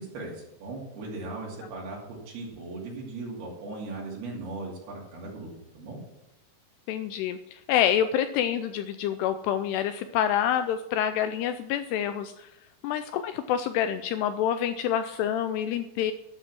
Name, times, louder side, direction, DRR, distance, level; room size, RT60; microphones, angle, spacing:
voice 1, 0.0-6.0, right 3 dB, 65° right, -2 dB, 4.4 m, -38 dB
voice 2, 6.9-12.5 12.8-16.1, left 10 dB, 85° left, 10 dB, 2.4 m, -27 dB
12.0 x 6.2 x 6.1 m, 0.87 s
omnidirectional pair, 5.1 m